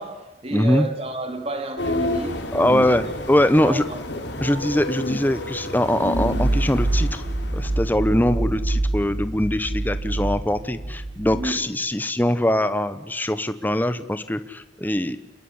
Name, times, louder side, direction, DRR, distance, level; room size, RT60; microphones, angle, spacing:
voice 1, 0.0-2.5 2.8-3.1 3.6-4.0 4.4-4.6 11.3-11.7, right 2 dB, 30° right, 2.4 m, -31 dB
voice 2, 0.5-0.9 2.5-3.8 4.4-7.2 7.5-15.2, left 1 dB, 10° left, 1.0 m, -22 dB
sound 1, 1.8-7.9, left 1 dB, 70° left, 3.9 m, -30 dB
sound 2, 6.1-11.5, right 2 dB, 85° right, 5.7 m, -25 dB
28.0 x 21.5 x 9.7 m
head